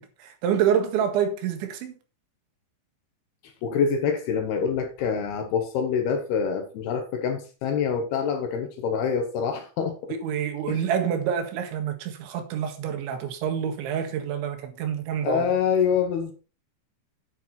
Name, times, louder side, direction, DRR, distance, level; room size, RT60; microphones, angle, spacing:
voice 1, 0.0-1.9 10.2-15.5, right 8 dB, 75° right, 4.0 m, -27 dB
voice 2, 3.6-10.1 10.7-10.8 15.2-16.3, left 6 dB, 65° left, 2.9 m, -26 dB
9.2 x 9.2 x 4.3 m
omnidirectional pair, 5.5 m